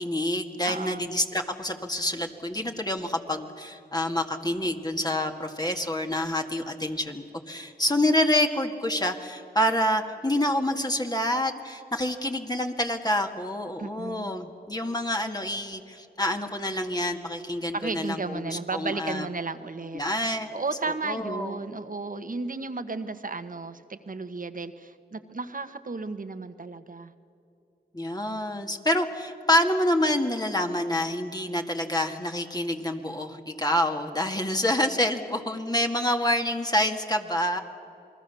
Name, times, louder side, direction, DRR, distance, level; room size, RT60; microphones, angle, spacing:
voice 1, 0.0-19.3 19.9-20.5 21.1-21.6 27.9-37.6, left 1 dB, 20° left, 3 dB, 2.0 m, -27 dB
voice 2, 0.6-1.1 13.8-14.3 17.7-20.0 20.5-27.1, right 3 dB, 50° right, 10 dB, 1.4 m, -34 dB
28.0 x 20.0 x 7.1 m, 2.7 s
cardioid pair, 45°, 18 cm